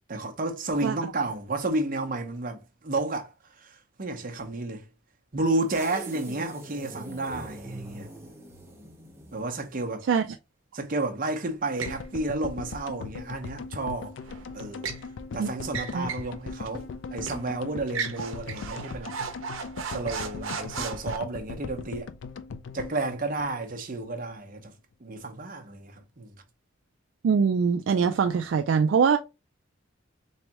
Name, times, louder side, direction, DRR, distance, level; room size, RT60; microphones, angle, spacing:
voice 1, 0.1-4.8 5.3-8.1 9.3-10.1 10.7-14.2 14.5-14.9 15.3-19.1 19.9-22.1 22.7-24.7 25.0-26.3, right 2 dB, 45° right, 0.8 m, -31 dB
sound 1, 5.7-10.0, right 1 dB, 15° right, 0.9 m, -43 dB
sound 2, 11.8-12.0 14.2-15.1 15.7-16.3 16.7-16.8 17.3-17.5 17.9-21.2, right 5 dB, 85° right, 0.7 m, -35 dB
sound 3, 11.9-24.1 24.3-24.4 24.6-24.7, left 4 dB, 60° left, 0.4 m, -39 dB
voice 2, 27.2-29.2, right 6 dB, 65° right, 0.3 m, -22 dB
3.5 x 3.2 x 2.9 m
head